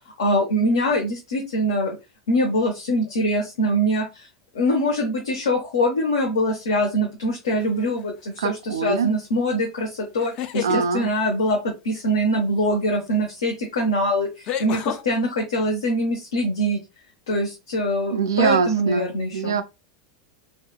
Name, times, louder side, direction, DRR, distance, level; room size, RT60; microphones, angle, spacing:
voice 1, 0.2-2.0 2.3-4.3 4.5-11.6 11.8-16.8 17.3-19.6, equal, 85° left, 0.6 m, -23 dB
sound 1, 7.6-8.0 10.2-10.8 13.1-13.2 14.4-15.0, left 10 dB, 50° left, 0.4 m, -29 dB
voice 2, 8.4-9.1 10.6-11.1 18.1-19.1 19.3-19.6, right 6 dB, 85° right, 0.3 m, -23 dB
2.8 x 2.2 x 2.3 m
hypercardioid pair, 95°, 2 cm